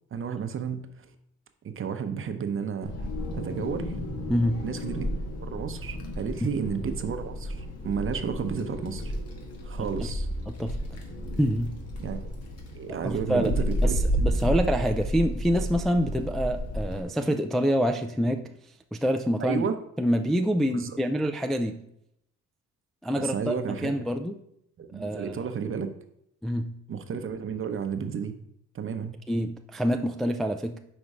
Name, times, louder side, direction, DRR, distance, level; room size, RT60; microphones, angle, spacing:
voice 1, 0.1-1.1 1.6-3.1 3.3-4.0 4.6-5.0 5.4-9.1 9.6-10.3 12.0-12.3 12.7-14.1 14.4-14.5 19.4-19.8 20.7-21.0 23.1-23.9 24.8-25.9 26.9-28.3 28.7-29.2, right 6 dB, 45° right, 7 dB, 0.8 m, -32 dB
Wind, 2.8-17.0, equal, 55° left, 1.5 m, -32 dB
voice 2, 4.3-4.6 6.4-6.5 9.8-10.1 10.5-10.8 11.4-11.8 13.0-13.5 13.8-13.9 14.2-18.5 18.9-19.6 20.0-21.8 23.0-24.3 24.9-25.3 26.4-26.8 29.3-30.8, equal, ahead, 5 dB, 0.3 m, -26 dB
5.4 x 4.3 x 4.8 m, 0.75 s
cardioid pair, 90°, 30 cm